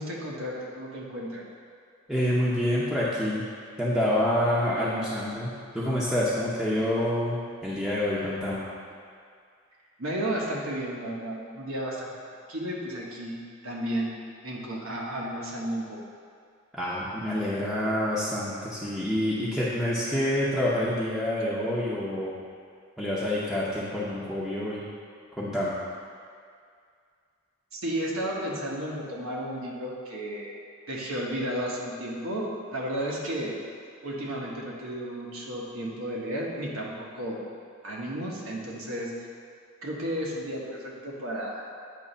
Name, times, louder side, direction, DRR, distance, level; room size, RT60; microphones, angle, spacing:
voice 1, 0.0-1.5 10.0-12.1 12.5-13.4 13.6-14.1 14.4-16.0 27.7-30.6 30.9-33.6 34.0-37.4 37.8-39.1 39.8-41.7, right 1 dB, 85° right, -3 dB, 1.2 m, -33 dB
voice 2, 2.1-3.4 3.8-8.6 16.7-22.3 23.0-24.9 25.4-25.8, left 1 dB, ahead, -10 dB, 0.7 m, -27 dB
8.3 x 3.0 x 5.4 m, 2.2 s
head